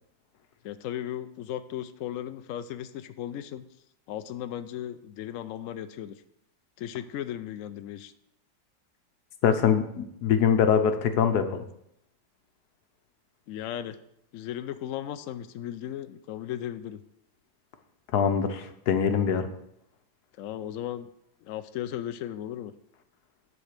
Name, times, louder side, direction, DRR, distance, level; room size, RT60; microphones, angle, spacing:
voice 1, 0.6-3.7 4.1-6.2 6.8-8.1 13.5-14.0 14.3-17.0 20.4-21.1 21.4-22.7, left 11 dB, 85° left, 10 dB, 0.7 m, -36 dB
voice 2, 9.4-11.6 18.1-19.5, left 7 dB, 65° left, 8 dB, 1.3 m, -23 dB
10.0 x 4.1 x 6.5 m, 0.75 s
omnidirectional pair, 2.0 m